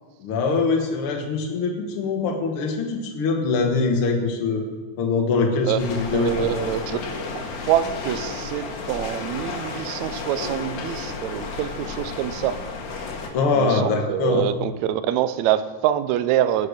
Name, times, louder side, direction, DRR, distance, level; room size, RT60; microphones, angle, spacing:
voice 1, 0.2-4.6 5.0-6.5 6.9-7.0 13.3-14.5, left 4 dB, 55° left, 2 dB, 2.0 m, -23 dB
sound 1, 5.8-13.3, left 4 dB, 85° left, 3.0 m, -32 dB
voice 2, 6.1-7.0 7.3-12.6 13.5-16.7, right 12 dB, 75° right, 13 dB, 1.9 m, -25 dB
17.5 x 6.6 x 6.5 m, 1.4 s
omnidirectional pair, 3.5 m